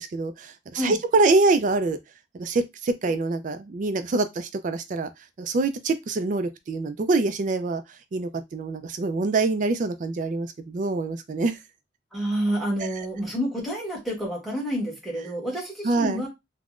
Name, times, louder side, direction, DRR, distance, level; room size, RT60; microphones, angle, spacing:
voice 1, 0.0-2.0 2.3-5.1 5.4-7.8 8.1-11.6 12.8-13.1 15.8-16.2, right 3 dB, 45° right, 0.3 m, -25 dB
voice 2, 12.1-16.3, equal, ahead, 1.2 m, -29 dB
3.5 x 2.1 x 2.4 m
head